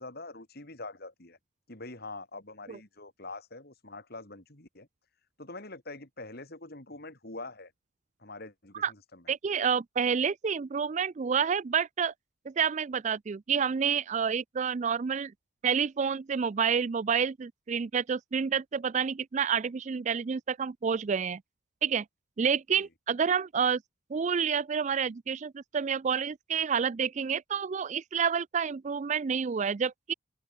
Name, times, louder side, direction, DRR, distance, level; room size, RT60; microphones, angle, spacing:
voice 1, 0.0-1.4 1.7-4.9 5.4-7.7 8.2-9.3 22.8-22.9, left 2 dB, 50° left, 3.4 m, -44 dB
voice 2, 9.3-12.1 12.5-15.3 15.6-21.4 21.8-22.0 22.4-23.8 24.1-30.1, right 6 dB, 35° right, 0.3 m, -29 dB
open air
head